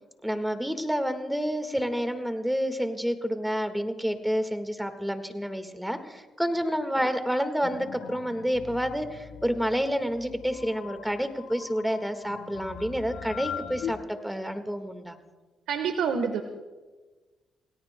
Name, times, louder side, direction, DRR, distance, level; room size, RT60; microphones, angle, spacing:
voice 1, 0.2-15.2, equal, 5° right, 7 dB, 1.6 m, -29 dB
sound 1, 7.6-14.0, left 9 dB, 80° left, 1.1 m, -41 dB
voice 2, 15.7-16.4, right 6 dB, 85° right, 7 dB, 1.2 m, -27 dB
28.5 x 17.5 x 2.2 m, 1.3 s
cardioid pair, 90°, 0 cm